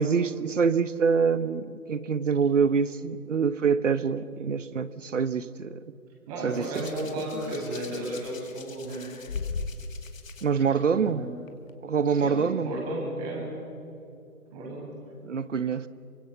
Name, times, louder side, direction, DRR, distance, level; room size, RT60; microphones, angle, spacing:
voice 1, 0.0-5.8 6.4-6.8 10.4-11.3 11.8-12.7 15.2-15.9, right 6 dB, 55° right, 15 dB, 1.1 m, -25 dB
voice 2, 6.3-9.1 11.0-11.3 12.2-13.6 14.5-14.9, right 1 dB, 25° right, -2 dB, 8.0 m, -34 dB
Hands, 6.5-10.4 11.5-11.7, left 4 dB, 60° left, 2.4 m, -38 dB
27.5 x 24.5 x 7.3 m, 2.6 s
figure-of-eight pair, 150°, 45 cm